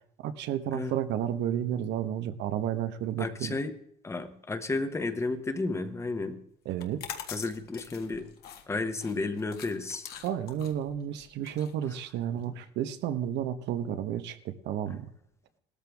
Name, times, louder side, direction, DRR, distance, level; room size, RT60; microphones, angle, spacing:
voice 1, 0.2-3.6 6.6-7.2 10.2-15.1, right 10 dB, 80° right, 10 dB, 1.2 m, -32 dB
voice 2, 3.2-3.7 4.0-6.4 7.3-8.3 8.7-10.1 12.5-12.6, left 3 dB, 15° left, 9 dB, 1.0 m, -32 dB
sound 1, 6.7-12.4, left 9 dB, 60° left, 1.7 m, -44 dB
18.5 x 13.5 x 3.5 m, 0.74 s
cardioid pair, 170°, 18 cm